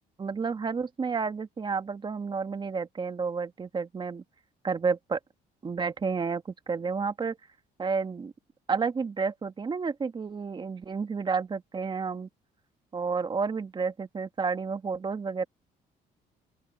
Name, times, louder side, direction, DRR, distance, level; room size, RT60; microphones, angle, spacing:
voice 1, 0.2-4.2 4.6-5.2 5.6-7.4 7.8-8.3 8.7-12.3 12.9-15.4, right 5 dB, 30° right, 1.5 m, -30 dB
open air
cardioid pair, 110°, 17 cm